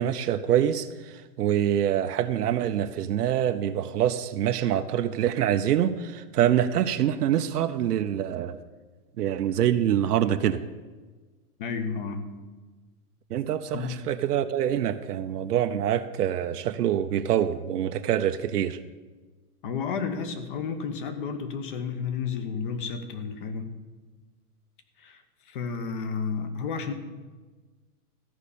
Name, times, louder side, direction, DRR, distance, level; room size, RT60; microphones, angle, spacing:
voice 1, 0.0-8.6 9.2-10.6 13.3-18.8, right 10 dB, 85° right, 7 dB, 0.8 m, -25 dB
voice 2, 11.6-12.3 13.7-14.1 19.6-23.8 25.0-26.9, left 5 dB, 35° left, 9 dB, 1.0 m, -32 dB
14.0 x 5.6 x 8.4 m, 1.3 s
supercardioid pair, 170°, 45 cm